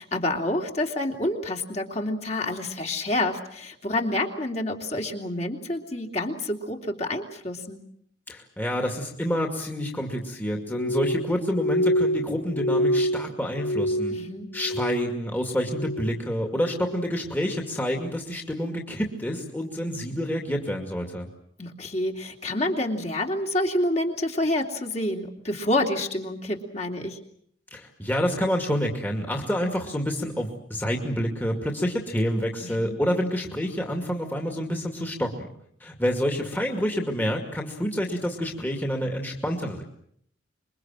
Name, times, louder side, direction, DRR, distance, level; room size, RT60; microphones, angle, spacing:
voice 1, 0.0-7.8 14.1-14.5 21.6-27.2 32.6-33.0, left 1 dB, 35° left, 2 dB, 3.0 m, -28 dB
voice 2, 8.3-14.1 14.5-21.3 27.7-35.5 35.8-39.8, equal, 10° left, 1 dB, 2.4 m, -28 dB
Glass, 10.7-15.3 15.6-16.2 16.6-17.2 17.8-18.0, equal, 85° left, 2.7 m, -27 dB
26.5 x 23.0 x 7.6 m, 0.69 s
head